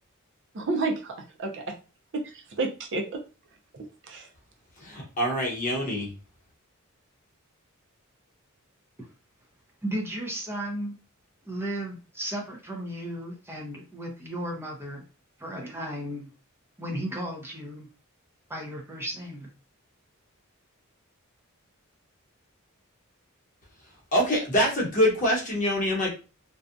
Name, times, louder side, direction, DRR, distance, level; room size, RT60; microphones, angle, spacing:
voice 1, 0.5-1.8 2.1-3.2 3.7-4.3, right 3 dB, 60° right, 2 dB, 0.6 m, -31 dB
voice 2, 4.8-6.1 24.1-26.1, equal, 40° left, -2 dB, 1.0 m, -25 dB
voice 3, 9.8-11.0 11.5-15.0 15.4-16.3 16.8-17.9 18.5-19.5, right 1 dB, 10° right, 0 dB, 0.7 m, -34 dB
2.7 x 2.3 x 2.4 m, 0.33 s
head